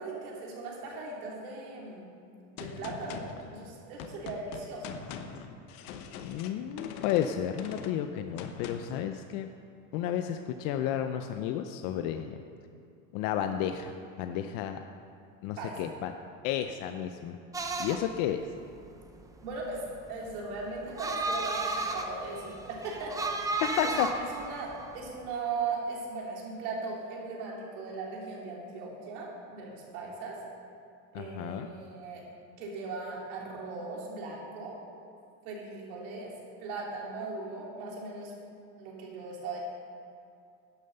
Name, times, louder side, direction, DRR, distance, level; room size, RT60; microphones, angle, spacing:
voice 1, 0.0-2.1 2.5-5.0 15.6-15.9 19.4-19.8 20.1-23.6 24.1-30.4 31.1-32.2 32.6-34.8 35.4-36.3 36.6-38.3 38.8-39.6, right 3 dB, 80° right, -3 dB, 3.3 m, -38 dB
Gunshot gunfire, 2.6-9.1, left 7 dB, 80° left, 1.0 m, -43 dB
voice 2, 6.2-9.5 9.9-12.4 13.1-14.8 15.4-16.1 16.4-17.4 17.8-18.4 23.8-24.1 31.1-31.7, left 10 dB, 50° left, 7 dB, 0.6 m, -32 dB
sound 1, 17.5-25.3, right 2 dB, 10° right, 0.5 m, -34 dB
11.0 x 7.5 x 6.7 m, 2.5 s
supercardioid pair, 145°, 43 cm